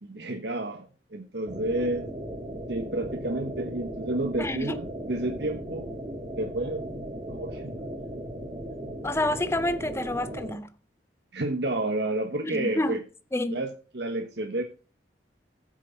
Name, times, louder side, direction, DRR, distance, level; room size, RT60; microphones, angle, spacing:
voice 1, 0.0-2.1 2.7-5.8 6.4-6.9 7.3-7.9 11.3-13.0 13.5-14.6, right 2 dB, 65° right, 1.2 m, -30 dB
sound 1, 1.5-10.5, right 1 dB, 20° right, 2.2 m, -37 dB
voice 2, 4.4-4.8 9.0-10.7 12.4-13.0 13.3-13.6, left 1 dB, 15° left, 0.6 m, -28 dB
15.0 x 6.3 x 4.6 m
head